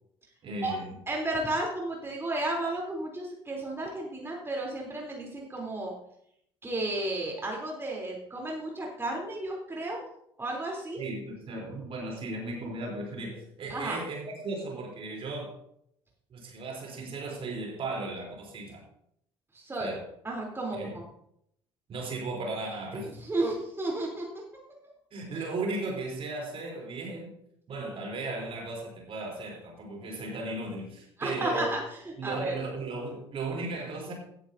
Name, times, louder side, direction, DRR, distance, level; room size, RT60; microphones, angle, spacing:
voice 1, 0.4-0.9 11.0-15.6 16.3-18.8 19.8-20.0 20.7-21.0 21.9-23.1 25.1-27.3 27.7-31.8 32.2-34.1, right 2 dB, 40° right, 0 dB, 3.7 m, -36 dB
voice 2, 1.1-5.9 6.6-10.0 10.4-11.0 13.7-14.0 19.5-19.9 20.2-21.0 23.2-24.4 31.2-31.8 32.1-32.5, right 2 dB, 15° right, -2 dB, 3.6 m, -33 dB
17.0 x 10.5 x 2.8 m, 0.72 s
figure-of-eight pair, 55°, 14 cm